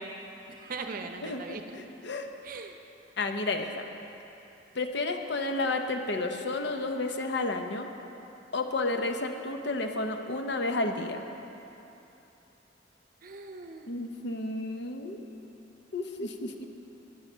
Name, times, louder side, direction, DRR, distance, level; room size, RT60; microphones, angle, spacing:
voice 1, 0.5-1.8 2.4-2.8 13.2-13.9, right 4 dB, 50° right, 5 dB, 0.7 m, -40 dB
voice 2, 1.2-2.3 3.2-3.9 4.7-7.9 8.5-11.2 13.9-15.2 15.9-16.5, left 2 dB, 65° left, 5 dB, 0.7 m, -31 dB
10.0 x 9.8 x 5.5 m, 3.0 s
head